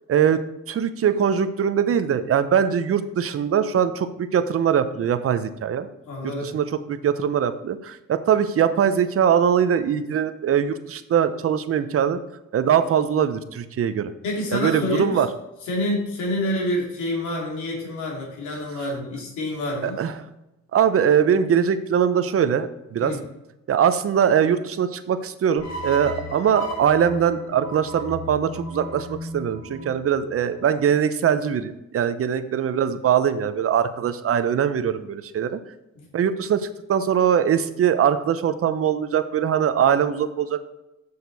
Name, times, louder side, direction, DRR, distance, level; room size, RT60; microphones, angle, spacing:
voice 1, 0.1-0.4 0.7-5.9 6.4-12.2 12.5-14.1 14.5-15.3 19.8-20.1 20.7-23.1 23.7-35.6 36.1-40.7, right 8 dB, 50° right, 11 dB, 0.7 m, -22 dB
voice 2, 6.0-6.5 14.2-15.2 15.6-20.0 23.0-23.2 36.0-36.1, left 1 dB, 75° left, -1 dB, 2.8 m, -27 dB
sound 1, 25.6-30.8, equal, 60° left, 1.8 m, -35 dB
6.8 x 6.7 x 4.0 m, 0.92 s
cardioid pair, 90°, 30 cm